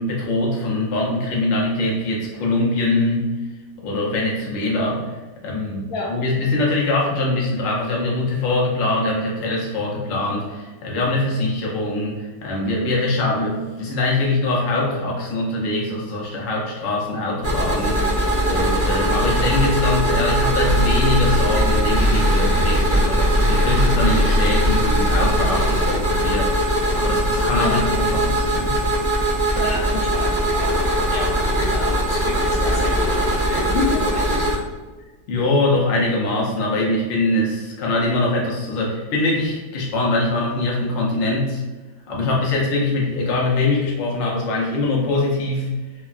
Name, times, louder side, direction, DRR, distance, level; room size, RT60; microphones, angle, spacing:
voice 1, 0.0-3.3 3.8-5.1 5.4-28.9 35.3-41.6 42.1-45.7, left 2 dB, 85° left, -3 dB, 0.6 m, -23 dB
sound 1, 17.4-34.5, equal, 20° right, 0.4 m, -20 dB
voice 2, 29.6-30.7 31.1-34.6, left 2 dB, 65° left, -3 dB, 1.0 m, -29 dB
3.2 x 2.2 x 2.3 m, 1.3 s
omnidirectional pair, 2.0 m